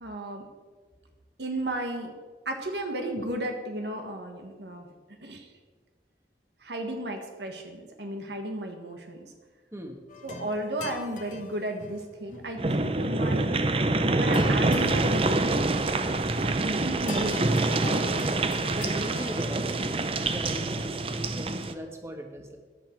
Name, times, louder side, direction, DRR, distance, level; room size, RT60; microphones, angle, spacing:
voice 1, 0.0-0.5 1.4-2.1 2.4-4.9 5.2-5.5 6.6-9.3 10.2-13.5 14.2-15.6 16.4-17.9, right 1 dB, 75° right, 4 dB, 1.5 m, -34 dB
sound 1, 10.1-20.2, left 3 dB, 45° left, 1.1 m, -42 dB
sound 2, 12.6-21.7, right 2 dB, 30° right, 0.6 m, -26 dB
voice 2, 18.7-22.6, equal, 15° right, 4 dB, 1.4 m, -39 dB
14.5 x 10.5 x 4.6 m, 1.4 s
head